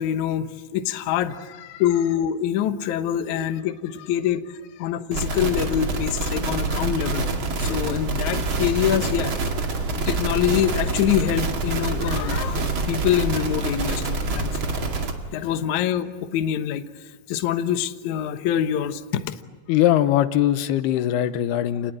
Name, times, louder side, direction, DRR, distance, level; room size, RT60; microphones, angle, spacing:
voice 1, 0.0-1.3 1.8-4.4 4.8-7.3 7.6-9.3 10.1-14.6 15.3-16.8 17.3-19.0, left 10 dB, 65° left, 9 dB, 2.1 m, -25 dB
voice 2, 1.5-1.8 3.3-3.5 19.7-21.9, left 12 dB, 85° left, 12 dB, 2.9 m, -21 dB
sound 1, 5.1-15.1, right 3 dB, 40° right, 2.5 m, -26 dB
28.5 x 20.0 x 8.9 m, 1.4 s
omnidirectional pair, 4.5 m